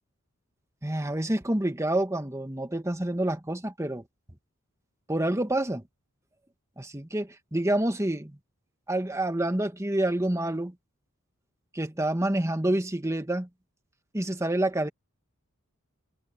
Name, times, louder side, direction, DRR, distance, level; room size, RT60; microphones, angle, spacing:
voice 1, 0.8-4.0 5.1-5.8 6.8-8.4 8.9-10.7 11.7-13.5 14.1-14.9, right 1 dB, 15° right, 1.5 m, -28 dB
head